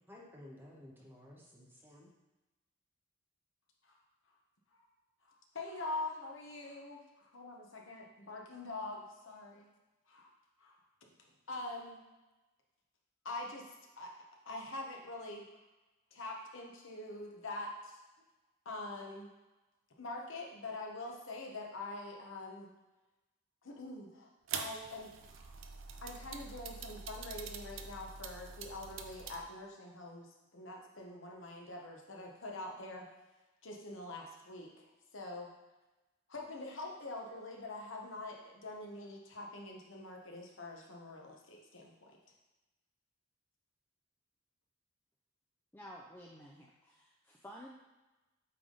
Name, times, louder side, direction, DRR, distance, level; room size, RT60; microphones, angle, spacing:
voice 1, 0.1-2.1, left 1 dB, 10° right, -3 dB, 1.0 m, -54 dB
voice 2, 5.2-9.7 10.1-10.3 10.6-10.8 11.5-12.0 13.2-13.7 14.0-14.1 14.5-15.4 16.1-18.0 18.6-19.3 20.0-22.7 23.6-24.3 24.6-25.5 26.0-33.1 33.6-34.7 35.1-35.5 36.3-42.2, left 2 dB, 60° left, 0 dB, 1.0 m, -44 dB
sound 1, 24.5-29.4, right 6 dB, 60° right, 0.5 m, -45 dB
voice 3, 45.7-47.7, equal, 10° left, -3 dB, 0.5 m, -52 dB
8.5 x 3.5 x 3.9 m, 1.1 s
head